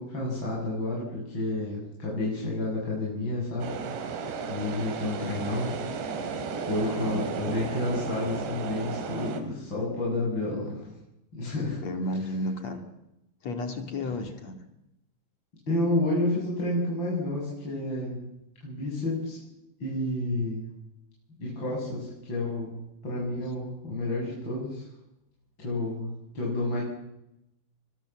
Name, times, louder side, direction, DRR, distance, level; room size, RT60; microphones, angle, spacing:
voice 1, 0.0-3.7 4.1-4.2 4.5-10.9 11.3-11.8 15.7-18.2 18.6-19.4 19.8-20.6 21.4-22.8 23.0-24.9 25.6-26.8, left 2 dB, 25° left, -5 dB, 8.6 m, -30 dB
sound 1, 3.6-9.4, right 5 dB, 75° right, 4.7 m, -34 dB
voice 2, 6.8-7.3 11.8-12.8 13.4-14.6, left 1 dB, 45° left, 6 dB, 3.0 m, -33 dB
29.0 x 24.0 x 7.7 m, 0.88 s
omnidirectional pair, 5.0 m